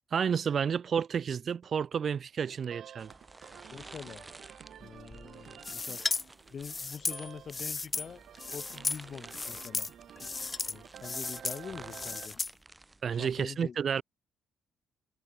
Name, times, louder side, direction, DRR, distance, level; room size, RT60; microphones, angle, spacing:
voice 1, 0.1-3.1 13.0-14.0, right 7 dB, 50° right, 0.6 m, -30 dB
sound 1, 2.3-12.3, right 10 dB, 70° right, 2.1 m, -51 dB
sound 2, 3.0-13.5, right 2 dB, 15° right, 7.3 m, -53 dB
voice 2, 3.7-4.2 4.8-6.0 6.5-9.9 10.2-10.3 10.7-12.4 13.2-13.8, left 6 dB, 45° left, 3.3 m, -45 dB
sound 3, 5.6-6.2 6.6-8.1 8.4-9.0 9.3-9.9 10.2-10.7 11.0-11.6 11.9-12.5, left 4 dB, 30° left, 0.9 m, -34 dB
cardioid pair, 90°, 0 cm